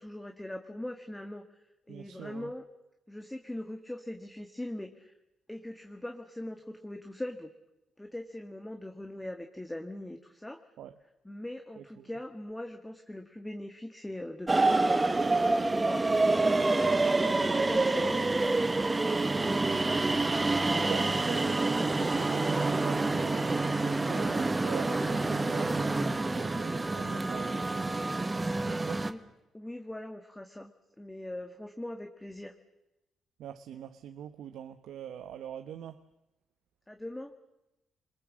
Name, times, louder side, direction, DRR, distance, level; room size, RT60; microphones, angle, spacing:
voice 1, 0.0-2.6 3.1-5.1 5.5-7.5 8.0-10.6 11.3-16.1 16.5-18.9 28.9-30.7 31.0-32.5 36.9-37.3, left 1 dB, 10° left, 1.7 m, -41 dB
voice 2, 1.9-2.5 10.8-10.9 11.8-12.1 19.6-20.3 20.8-27.9 28.7-29.0 33.4-36.1, right 10 dB, 80° right, 1.0 m, -43 dB
sound 1, 14.5-29.1, right 2 dB, 20° right, 1.4 m, -27 dB
26.5 x 21.5 x 7.5 m
cardioid pair, 85°, 0 cm